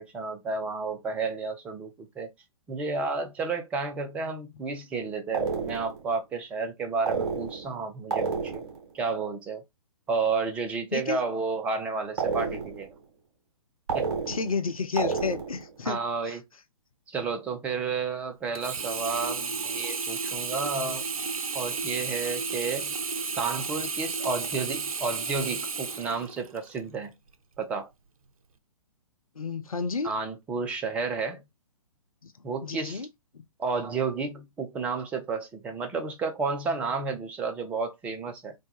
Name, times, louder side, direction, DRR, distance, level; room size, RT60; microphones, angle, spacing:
voice 1, 0.0-2.3 2.7-8.6 8.9-9.6 10.1-12.9 13.9-14.1 15.8-16.4 17.1-21.0 21.5-22.9 23.4-27.1 27.6-27.9 30.0-31.4 32.4-33.0 33.6-38.5, right 4 dB, 5° right, 0.3 m, -31 dB
sound 1, 5.3-6.1 7.1-7.8 8.1-8.8 12.2-12.9 13.9-14.6 15.0-15.7, right 5 dB, 50° right, 1.0 m, -30 dB
voice 2, 14.3-16.0 16.3-16.4 29.4-30.1 32.2-32.3 32.6-33.1 33.3-33.4, left 4 dB, 75° left, 0.7 m, -31 dB
Sink (filling or washing), 18.5-26.8 27.3-27.4, right 5 dB, 75° right, 0.5 m, -32 dB
3.6 x 2.1 x 3.1 m
figure-of-eight pair, 125°, 18 cm